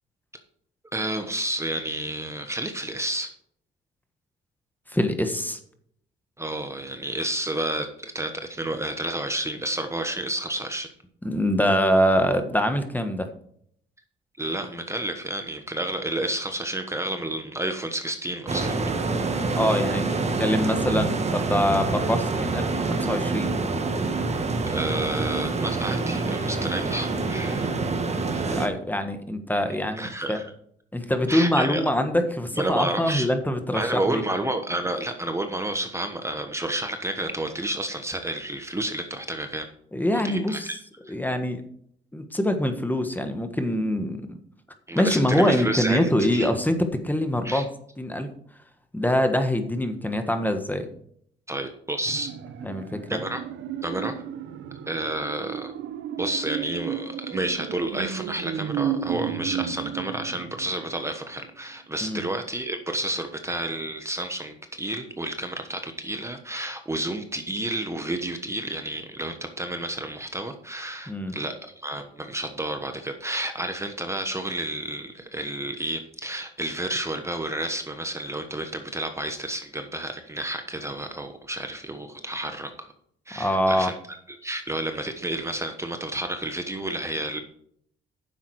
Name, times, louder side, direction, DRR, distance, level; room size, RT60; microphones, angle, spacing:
voice 1, 0.9-3.3 6.4-10.9 14.4-18.7 24.7-27.7 28.3-28.4 30.0-30.5 31.3-31.9 32.6-33.3 33.7-39.7 40.1-40.8 41.0-41.1 44.9-46.5 47.4-47.6 51.5-52.3 53.1-53.4 53.8-54.2 54.9-55.7 56.2-82.9 83.3-87.4, right 1 dB, 15° right, 6 dB, 1.2 m, -30 dB
voice 2, 4.9-5.6 11.2-13.3 19.6-20.0 20.4-23.5 28.5-30.4 30.9-34.2 39.9-40.7 41.1-41.6 42.1-44.4 44.9-46.8 47.0-47.6 48.0-48.3 48.9-50.9 52.6-53.2 62.0-62.2 71.1-71.3 83.4-83.9, left 1 dB, 10° left, 7 dB, 1.4 m, -24 dB
sound 1, 18.5-28.7, right 3 dB, 35° right, 1.5 m, -26 dB
sound 2, 52.0-61.2 61.5-61.6, right 9 dB, 70° right, 1.0 m, -33 dB
10.0 x 7.4 x 4.7 m, 0.65 s
cardioid pair, 90°, 20 cm